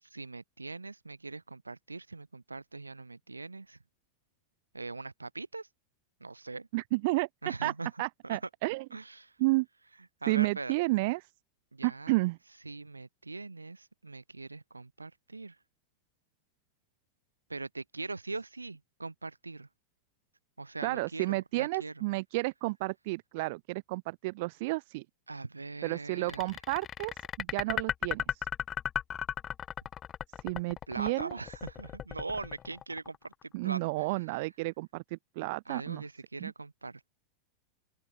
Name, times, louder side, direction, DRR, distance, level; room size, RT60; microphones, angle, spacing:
voice 1, 0.0-3.8 4.7-5.7 6.2-6.7 7.4-7.9 8.2-8.4 8.9-9.3 10.2-10.8 11.7-12.2 12.6-15.6 17.5-19.7 20.6-22.0 25.3-26.5 30.9-34.2 35.7-37.2, right 3 dB, 80° right, 8.0 m, -41 dB
voice 2, 6.7-7.3 7.6-7.7 8.0-8.8 9.4-9.7 10.3-11.2 11.8-12.4 20.8-25.0 25.8-27.1 27.4-28.2 30.4-31.4 33.5-36.0 36.4-36.5, right 23 dB, 50° right, 4.2 m, -31 dB
sound 1, 26.3-33.4, left 9 dB, 25° left, 4.5 m, -36 dB
open air
figure-of-eight pair, 90°, 0 cm